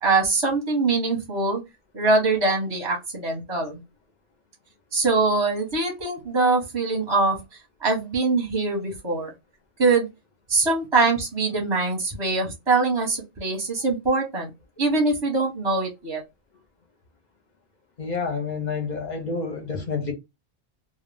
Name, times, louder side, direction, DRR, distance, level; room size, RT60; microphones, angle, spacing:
voice 1, 0.0-1.6 1.9-3.8 4.9-7.4 7.8-9.3 9.8-10.1 10.5-14.5 14.8-16.2, right 3 dB, 25° right, 0.7 m, -23 dB
voice 2, 18.0-20.1, left 5 dB, 50° left, 0.6 m, -29 dB
2.3 x 2.0 x 3.2 m
omnidirectional pair, 1.2 m